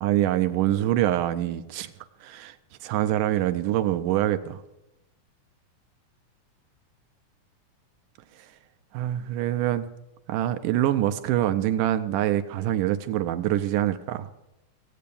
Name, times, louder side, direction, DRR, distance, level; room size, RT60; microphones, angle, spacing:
voice 1, 0.0-1.9 2.2-2.6 2.8-4.6 8.9-9.9 10.3-14.3, right 13 dB, 85° right, 10 dB, 2.2 m, -25 dB
16.0 x 8.5 x 6.9 m, 0.91 s
omnidirectional pair, 3.7 m